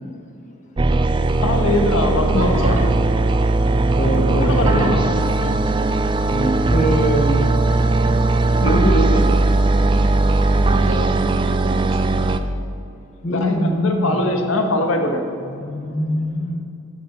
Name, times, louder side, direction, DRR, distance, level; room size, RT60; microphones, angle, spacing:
sound 1, 0.8-12.4, right 2 dB, 25° right, 0.3 m, -18 dB
voice 1, 1.4-2.8 4.2-5.1 8.6-9.4 13.3-15.3, left 1 dB, 80° left, 4 dB, 1.3 m, -21 dB
voice 2, 2.4-3.0 4.5-6.0 10.7-12.4, right 1 dB, 75° right, 1 dB, 1.8 m, -31 dB
voice 3, 3.9-4.8 6.2-7.3 13.2-14.2 15.4-16.6, equal, 35° left, 1 dB, 1.2 m, -23 dB
13.0 x 7.7 x 4.4 m, 2.5 s
head